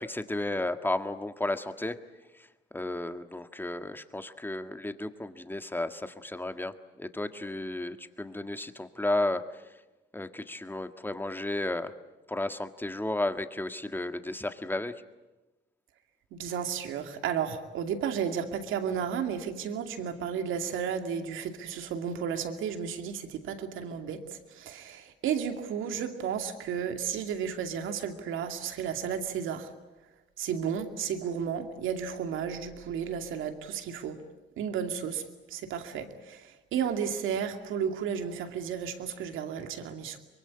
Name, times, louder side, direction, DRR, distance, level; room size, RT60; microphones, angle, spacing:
voice 1, 0.0-2.0 2.3-9.8 10.1-11.9 12.3-14.9, left 2 dB, 10° left, 9 dB, 1.7 m, -33 dB
voice 2, 16.3-29.7 30.4-34.2 34.6-35.2 35.5-40.2, right 7 dB, 85° right, 6 dB, 2.5 m, -33 dB
24.5 x 23.0 x 9.8 m, 1.1 s
cardioid pair, 90°, 20 cm